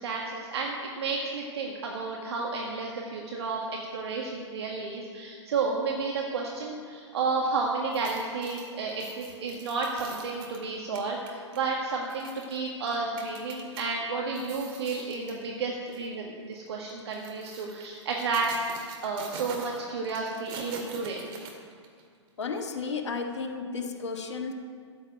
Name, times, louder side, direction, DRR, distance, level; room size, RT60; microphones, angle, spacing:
voice 1, 0.0-3.7 3.9-18.5 18.8-21.2, right 4 dB, 60° right, -1 dB, 1.7 m, -32 dB
sound 1, 7.8-13.8 14.2-15.4 15.9-16.1 16.9-22.0 22.4-22.5, right 5 dB, 30° right, 2.2 m, -45 dB
voice 2, 22.4-24.5, left 4 dB, 70° left, 4 dB, 1.6 m, -33 dB
13.5 x 7.2 x 9.1 m, 2.2 s
figure-of-eight pair, 115°, 16 cm